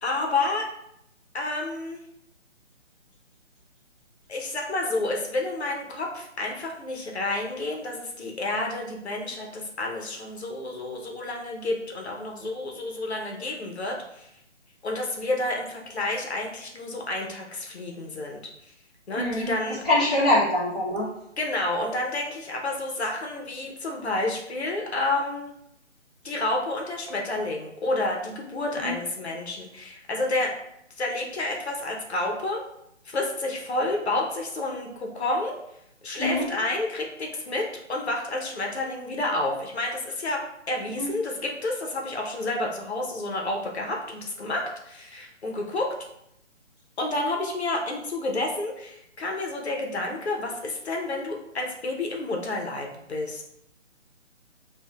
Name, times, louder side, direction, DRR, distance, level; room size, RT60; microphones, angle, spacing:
voice 1, 0.0-0.6 1.3-2.0 4.3-14.3 14.8-18.4 19.1-19.8 21.4-25.5 26.2-30.5 31.0-32.6 33.0-35.5 36.0-40.4 40.7-45.9 47.0-53.4, left 2 dB, 60° left, 0 dB, 0.8 m, -30 dB
voice 2, 19.2-19.5 19.8-21.1 28.8-28.9 36.2-36.5 40.9-41.1, left 1 dB, ahead, -17 dB, 1.1 m, -23 dB
5.3 x 2.5 x 2.4 m, 0.79 s
figure-of-eight pair, 150°, 37 cm